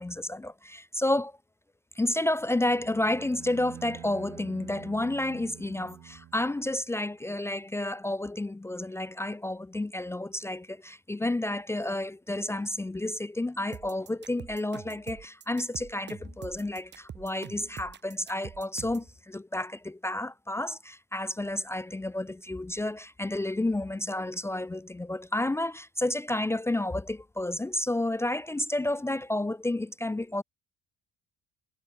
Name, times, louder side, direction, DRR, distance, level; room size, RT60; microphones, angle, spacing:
voice 1, 0.0-1.3 2.0-30.4, left 1 dB, 10° left, 0.7 m, -31 dB
Bowed string instrument, 2.1-6.9, right 12 dB, 60° right, 7.3 m, -48 dB
sound 1, 13.7-19.1, right 8 dB, 35° right, 3.5 m, -44 dB
cardioid pair, 170°, 30 cm